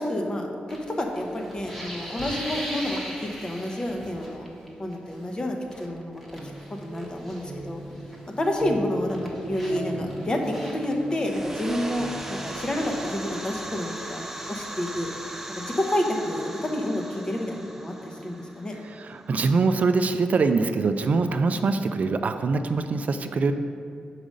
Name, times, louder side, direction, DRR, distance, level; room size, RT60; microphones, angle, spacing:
voice 1, 0.0-4.5 4.8-6.2 6.8-7.8 8.4-9.2 9.4-15.1 15.6-18.8, left 1 dB, 25° left, 2 dB, 0.8 m, -29 dB
sound 1, 0.7-4.7 4.9-5.2 5.6-8.2 8.5-15.3, equal, 10° left, 1.2 m, -40 dB
sound 2, 6.2-13.8, right 2 dB, 75° right, 0.7 m, -38 dB
sound 3, 11.1-19.7, right 1 dB, 10° right, 0.6 m, -39 dB
voice 2, 18.8-23.5, right 4 dB, 55° right, 8 dB, 0.3 m, -24 dB
5.2 x 4.9 x 6.3 m, 2.5 s
wide cardioid pair, 110°, 3 cm